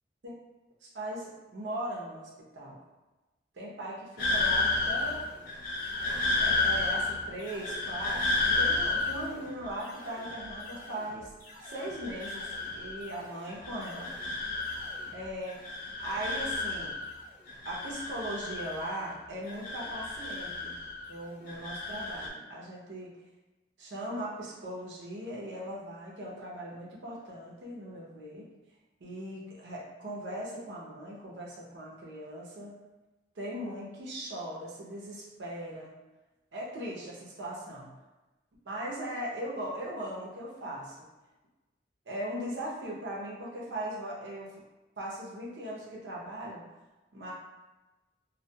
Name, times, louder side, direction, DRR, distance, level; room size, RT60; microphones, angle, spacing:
voice 1, 0.8-2.8 3.5-5.4 6.4-11.3 11.6-14.1 15.1-15.6 16.0-16.9 17.7-20.8 21.1-23.1 23.8-28.5 29.0-32.7 33.4-35.9 36.5-37.9 38.7-41.1 42.1-44.5 45.0-46.6 47.1-47.3, right 1 dB, 80° right, -4 dB, 0.6 m, -39 dB
sound 1, 4.2-11.2 11.5-13.2 13.5-15.2 15.5-17.2 17.5-19.1 19.5-21.1 21.5-22.3, left 3 dB, 55° left, 0.4 m, -32 dB
2.2 x 2.2 x 2.7 m, 1.1 s
head